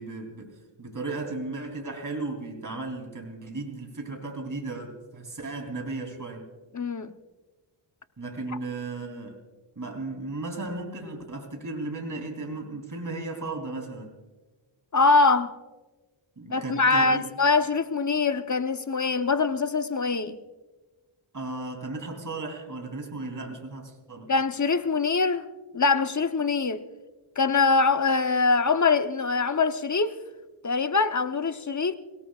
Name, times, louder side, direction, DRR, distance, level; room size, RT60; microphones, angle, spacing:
voice 1, 0.0-6.5 8.2-9.4 9.7-14.1 16.4-17.2 21.3-24.3, right 2 dB, 40° right, 3.3 m, -35 dB
voice 2, 6.7-7.1 14.9-15.5 16.5-20.4 24.3-25.4 25.7-26.8 27.4-30.2 30.6-31.9, left 4 dB, 35° left, 0.9 m, -23 dB
28.5 x 17.5 x 2.4 m
cardioid pair, 65°, 50 cm